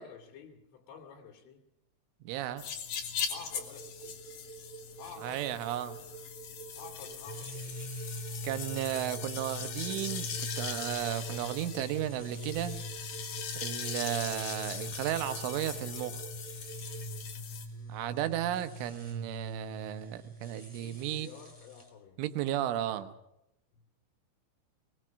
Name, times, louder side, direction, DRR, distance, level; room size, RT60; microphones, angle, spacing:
voice 1, 0.0-1.7 3.3-4.2 5.0-5.9 6.8-7.9 17.7-18.1 20.8-22.2 23.7-23.9, left 6 dB, 85° left, 3 dB, 4.9 m, -51 dB
voice 2, 2.3-2.6 5.2-6.0 8.4-12.8 13.6-16.2 17.9-21.3 22.2-23.1, right 12 dB, 90° right, 10 dB, 3.6 m, -34 dB
sound 1, 2.6-17.7, left 7 dB, 55° left, 3.0 m, -40 dB
sound 2, 3.3-17.0, right 6 dB, 10° right, 5.9 m, -49 dB
sound 3, 7.2-21.9, equal, 10° left, 2.1 m, -43 dB
22.0 x 21.0 x 6.3 m, 0.84 s
omnidirectional pair, 5.5 m